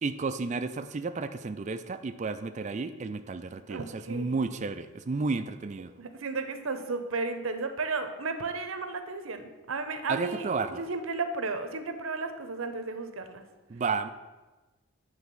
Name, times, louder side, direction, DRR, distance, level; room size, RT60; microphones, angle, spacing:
voice 1, 0.0-5.9 10.1-10.8 13.7-14.1, right 4 dB, 35° right, 9 dB, 0.4 m, -32 dB
voice 2, 3.7-4.4 6.0-10.5 10.8-13.4, right 3 dB, 75° right, 8 dB, 0.8 m, -33 dB
9.4 x 3.5 x 6.8 m, 1.2 s
head